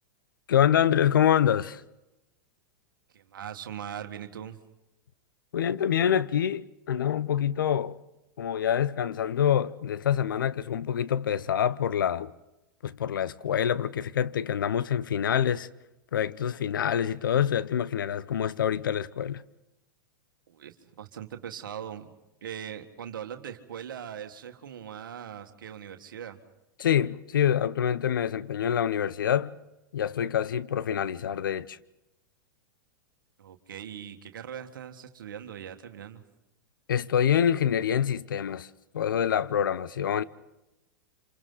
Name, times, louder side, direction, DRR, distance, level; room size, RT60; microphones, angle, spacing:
voice 1, 0.5-1.8 5.5-8.0 8.4-12.3 12.8-15.7 16.1-19.4 26.8-29.6 29.9-31.8 36.9-40.2, left 9 dB, 80° left, 0.8 m, -26 dB
voice 2, 3.1-4.6 20.5-22.1 22.4-26.4 33.4-36.2, right 9 dB, 80° right, 1.8 m, -40 dB
28.5 x 27.0 x 4.0 m
hypercardioid pair, 110°, 11 cm